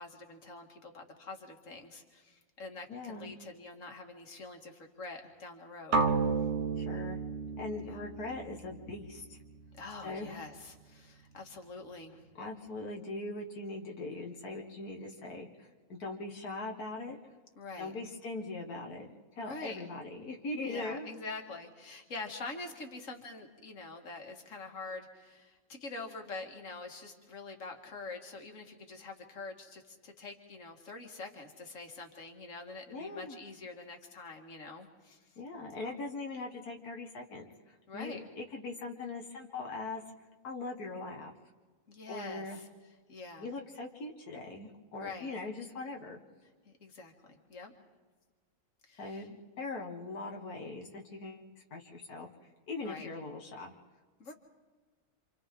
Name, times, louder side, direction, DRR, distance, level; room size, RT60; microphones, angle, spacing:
voice 1, 0.0-6.0 7.8-8.0 9.8-12.2 17.6-17.9 19.4-19.8 20.6-35.2 35.8-35.9 37.9-38.3 41.9-42.7 43.1-43.5 44.9-45.3 46.7-47.7 48.9-49.3 52.8-53.1 54.2-54.3, left 3 dB, 60° left, 3 dB, 2.3 m, -45 dB
voice 2, 2.9-3.3 6.8-7.2 7.6-9.4 10.0-10.3 12.4-17.2 17.8-19.1 19.3-21.1 32.9-33.4 35.4-40.0 40.4-41.3 42.1-42.6 43.4-46.2 49.0-52.3 52.7-53.7, left 3 dB, 90° left, 1 dB, 2.0 m, -41 dB
sound 1, 5.9-9.9, right 4 dB, 50° right, 1.2 m, -33 dB
28.0 x 26.5 x 3.8 m, 1.4 s
omnidirectional pair, 1.6 m